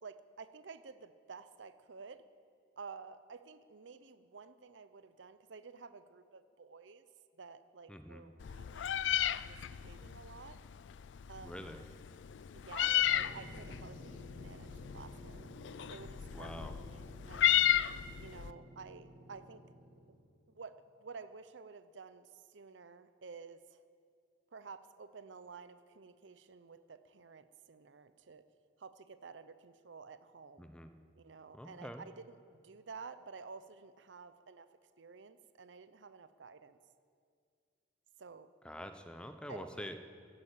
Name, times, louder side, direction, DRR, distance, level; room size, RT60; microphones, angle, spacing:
voice 1, 0.0-2.2 2.8-7.1 7.4-10.6 11.3-11.7 12.5-15.5 15.9-17.6 18.2-19.6 20.5-23.9 24.5-28.5 28.8-30.7 31.1-34.7 35.0-36.8 38.2-38.5 39.5-39.9, right 5 dB, 85° right, 13 dB, 0.7 m, -52 dB
voice 2, 7.9-8.2 11.4-11.8 16.3-16.7 30.6-30.9 31.5-32.1 38.6-40.0, equal, 5° left, 7 dB, 0.7 m, -46 dB
Meow, 8.4-18.5, left 11 dB, 75° left, 0.4 m, -34 dB
sound 1, 13.0-20.3, right 1 dB, 45° right, 4.1 m, -54 dB
16.0 x 9.0 x 8.3 m, 2.2 s
head